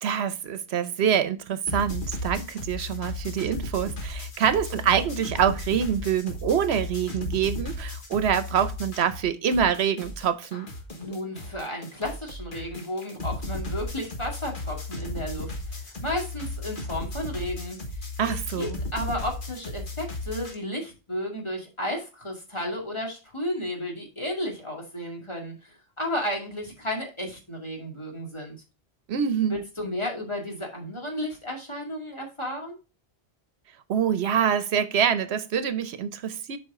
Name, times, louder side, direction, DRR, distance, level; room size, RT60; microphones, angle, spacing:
voice 1, 0.0-10.7 18.2-18.8 29.1-29.6 33.9-36.6, right 8 dB, 80° right, 1.0 m, -25 dB
sound 1, 1.7-9.3 9.5-20.6, left 2 dB, 50° left, 1.5 m, -35 dB
voice 2, 11.0-17.8 18.6-28.6 29.5-32.8, left 1 dB, 25° left, 2.3 m, -33 dB
7.9 x 5.1 x 3.6 m
omnidirectional pair, 1.1 m